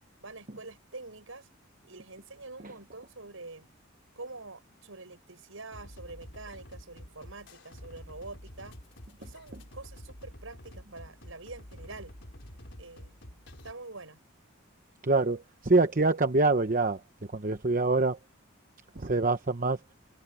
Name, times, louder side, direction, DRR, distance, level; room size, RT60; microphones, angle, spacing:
voice 1, 0.2-1.5 1.8-3.7 4.1-8.8 9.2-12.1 12.8-13.2 13.6-14.2, right 3 dB, 70° right, 6.3 m, -46 dB
sound 1, 5.7-13.7, equal, 60° left, 4.7 m, -48 dB
voice 2, 15.0-17.0 17.3-18.2 19.0-19.8, right 3 dB, 40° right, 0.9 m, -25 dB
head